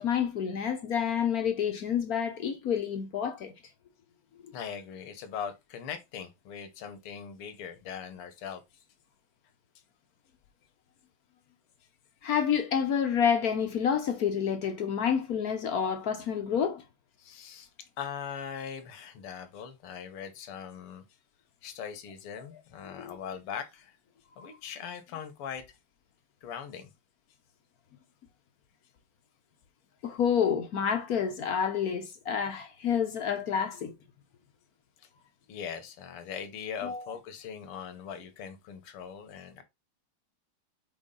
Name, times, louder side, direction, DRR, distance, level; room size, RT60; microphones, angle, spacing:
voice 1, 0.0-3.5 12.2-16.8 23.0-23.2 24.4-24.5 30.0-33.9 36.8-37.0, left 7 dB, 60° left, 1.0 m, -28 dB
voice 2, 4.5-8.6 17.2-17.7 18.0-21.0 21.6-24.0 24.4-25.7 26.4-26.9 35.0-35.1 35.5-39.6, left 7 dB, 85° left, 2.0 m, -40 dB
5.4 x 4.7 x 3.8 m
omnidirectional pair, 2.4 m